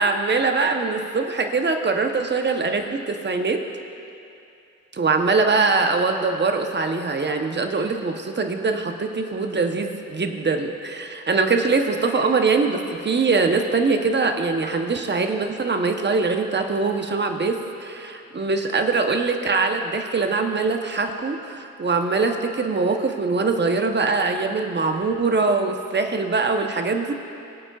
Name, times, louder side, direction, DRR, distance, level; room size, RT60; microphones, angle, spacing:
voice 1, 0.0-3.6 5.0-27.1, right 4 dB, 30° right, 5 dB, 0.9 m, -22 dB
21.5 x 8.6 x 2.4 m, 2.6 s
cardioid pair, 70°, 34 cm